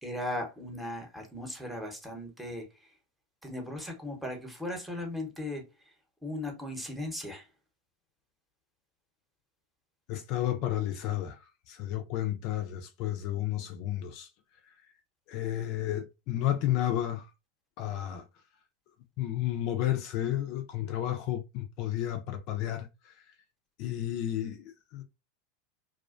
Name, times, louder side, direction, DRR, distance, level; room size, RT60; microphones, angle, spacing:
voice 1, 0.0-2.9 3.4-5.7 6.2-7.5, left 1 dB, 5° right, 0.8 m, -37 dB
voice 2, 10.1-11.4 11.7-14.3 15.3-17.3 17.8-18.3 19.2-23.1 23.8-25.0, left 12 dB, 55° left, 0.4 m, -32 dB
2.4 x 2.1 x 2.4 m
hypercardioid pair, 100°, 0 cm